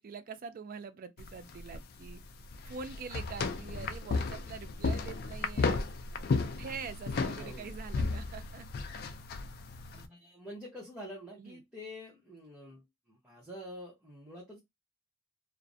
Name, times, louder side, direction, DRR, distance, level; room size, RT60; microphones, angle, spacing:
voice 1, 0.0-2.2 2.7-5.8 6.4-8.7 11.4-11.6, right 5 dB, 45° right, 0.3 m, -44 dB
sound 1, 1.2-10.1, left 4 dB, 50° left, 0.3 m, -34 dB
voice 2, 7.4-7.7 9.9-14.6, equal, 5° right, 0.7 m, -47 dB
2.4 x 2.0 x 2.5 m
head